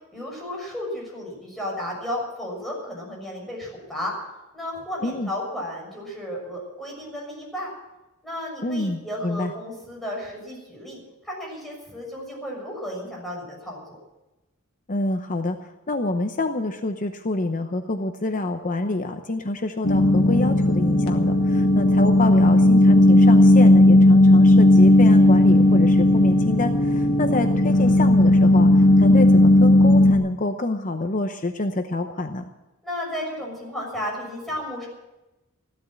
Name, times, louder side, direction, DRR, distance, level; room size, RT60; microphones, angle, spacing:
voice 1, 0.1-4.1 4.5-7.7 8.2-14.0 32.8-34.9, left 1 dB, ahead, -3 dB, 6.5 m, -33 dB
voice 2, 8.6-9.5 14.9-32.4, left 2 dB, 40° left, 7 dB, 0.8 m, -27 dB
sound 1, 19.8-30.1, left 1 dB, 70° left, 1.7 m, -15 dB
15.5 x 12.0 x 7.6 m, 1.0 s
head